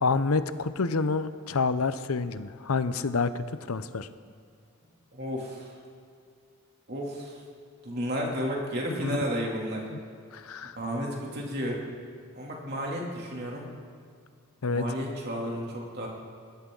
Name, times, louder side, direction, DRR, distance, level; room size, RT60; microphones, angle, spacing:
voice 1, 0.0-4.1 9.0-9.2 10.3-10.8 14.6-14.8, left 4 dB, 75° left, 12 dB, 0.7 m, -28 dB
voice 2, 4.8-5.8 6.9-7.4 7.8-9.9 10.8-11.8 12.3-13.7 14.7-16.1, equal, 45° right, -2 dB, 2.9 m, -32 dB
21.0 x 17.5 x 3.9 m, 2.3 s
head